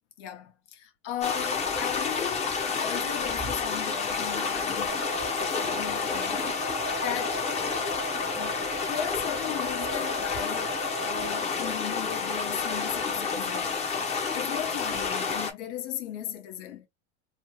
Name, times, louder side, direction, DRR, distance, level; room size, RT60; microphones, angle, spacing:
voice 1, 0.2-5.0 5.4-7.5 8.3-13.8 14.3-16.9, left 10 dB, 70° left, 1.2 m, -37 dB
sound 1, 1.2-15.5, left 5 dB, 20° left, 0.8 m, -30 dB
sound 2, 4.9-11.4, right 2 dB, 35° right, 0.9 m, -39 dB
3.1 x 2.3 x 2.9 m
supercardioid pair, 120°, 36 cm